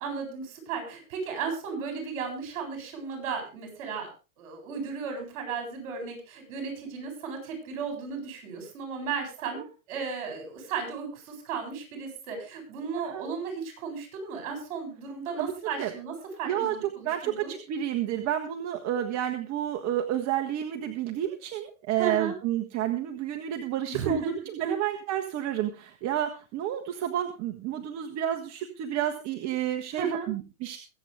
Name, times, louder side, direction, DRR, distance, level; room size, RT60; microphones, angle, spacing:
voice 1, 0.0-4.1 4.4-9.6 9.9-16.1 16.4-17.5 22.0-22.3 23.9-24.3 24.6-24.7 30.0-30.3, right 5 dB, 60° right, 4 dB, 7.8 m, -34 dB
voice 2, 16.5-24.2 24.5-30.8, right 11 dB, 40° right, 4 dB, 1.6 m, -30 dB
23.0 x 8.1 x 3.6 m, 0.31 s
hypercardioid pair, 125°, 43 cm